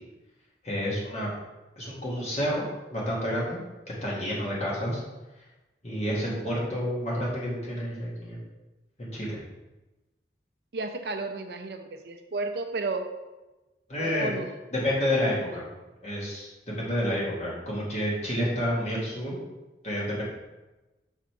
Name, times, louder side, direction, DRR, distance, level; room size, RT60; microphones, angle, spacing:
voice 1, 0.6-1.3 1.7-2.6 2.9-3.6 4.0-5.0 5.8-8.4 9.0-9.4 13.9-14.3 14.7-15.6 16.0-19.4 19.8-20.2, equal, 40° left, -5 dB, 1.8 m, -29 dB
voice 2, 10.7-13.1 14.0-14.5, right 3 dB, 60° right, 6 dB, 0.5 m, -33 dB
6.3 x 3.9 x 4.5 m, 1.1 s
head